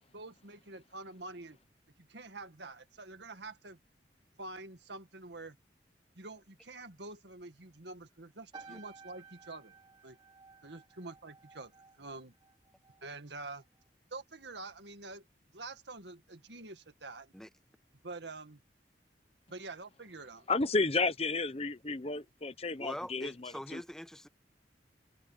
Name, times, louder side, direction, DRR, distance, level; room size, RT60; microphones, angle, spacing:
voice 1, 0.1-1.6 2.0-3.8 4.4-5.6 6.2-9.8 10.0-10.2 10.6-11.7 12.0-12.3 13.0-13.6 14.1-15.2 15.5-17.3 18.0-18.6 19.5-20.5 21.8-21.9, right 3 dB, 80° right, 1.9 m, -46 dB
sound 1, 8.5-13.1 13.4-13.8, right 5 dB, 25° right, 3.7 m, -55 dB
voice 2, 20.5-23.8, left 3 dB, 35° left, 1.0 m, -32 dB
voice 3, 22.8-24.3, equal, 5° left, 1.1 m, -43 dB
head